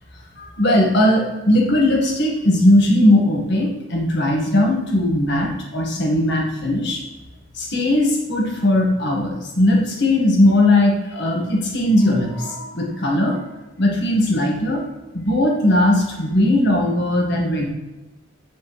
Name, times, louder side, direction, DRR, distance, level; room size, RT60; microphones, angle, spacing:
voice 1, 0.4-7.0 7.5-13.4 13.8-14.8 15.1-17.7, left 1 dB, 50° left, 0 dB, 1.7 m, -18 dB
7.6 x 6.7 x 3.3 m, 1.1 s
head